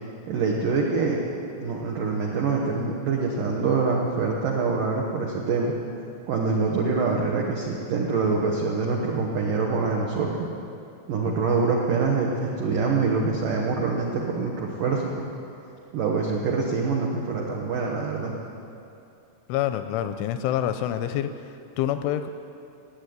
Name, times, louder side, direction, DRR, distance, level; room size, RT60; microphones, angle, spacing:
voice 1, 0.3-1.2 1.6-5.7 6.3-10.5 11.1-15.3 15.9-18.3, right 4 dB, 80° right, -1 dB, 1.9 m, -25 dB
voice 2, 19.5-21.3 21.8-22.3, left 11 dB, 85° left, 9 dB, 2.8 m, -26 dB
16.5 x 8.8 x 9.5 m, 2.6 s
omnidirectional pair, 5.7 m